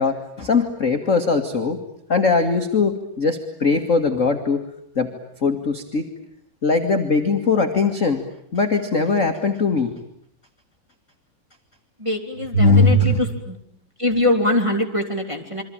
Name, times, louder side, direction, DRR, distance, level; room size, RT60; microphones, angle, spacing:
voice 1, 0.0-1.8 2.1-4.6 4.9-5.1 5.4-6.1 6.6-8.2 8.5-9.9 12.5-13.2, left 3 dB, 30° left, 4 dB, 1.5 m, -20 dB
voice 2, 12.0-13.6 14.0-15.6, left 1 dB, 10° right, 1 dB, 3.0 m, -23 dB
28.0 x 24.0 x 8.8 m, 0.69 s
omnidirectional pair, 3.6 m